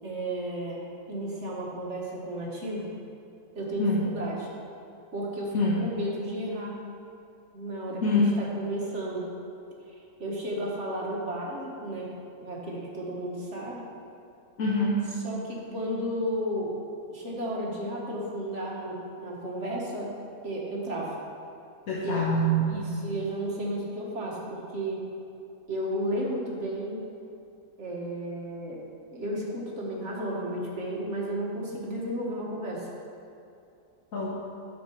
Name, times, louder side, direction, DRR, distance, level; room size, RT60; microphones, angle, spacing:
voice 1, 0.0-2.9 3.5-4.5 5.1-6.7 7.5-9.3 9.9-12.1 12.4-13.8 15.2-16.7 17.1-20.1 20.4-21.2 22.0-22.3 22.6-25.0 25.7-27.0 27.8-28.8 29.1-32.9, right 1 dB, 50° right, -3 dB, 1.6 m, -33 dB
voice 2, 14.6-15.0 21.9-23.1 34.1-34.3, left 1 dB, 65° left, -6 dB, 1.5 m, -25 dB
9.4 x 6.9 x 4.5 m, 2.7 s
omnidirectional pair, 1.6 m